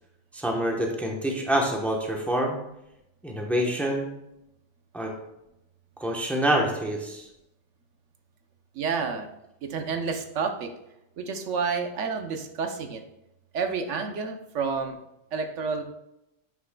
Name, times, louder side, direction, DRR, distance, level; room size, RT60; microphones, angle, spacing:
voice 1, 0.3-2.6 3.2-4.1 4.9-5.1 6.0-7.2, right 1 dB, ahead, 0 dB, 0.8 m, -26 dB
voice 2, 8.7-9.3 9.6-10.7 11.2-13.0 13.5-15.0 15.3-15.8, right 5 dB, 85° right, 6 dB, 1.1 m, -29 dB
8.7 x 6.1 x 2.2 m, 0.86 s
omnidirectional pair, 1.2 m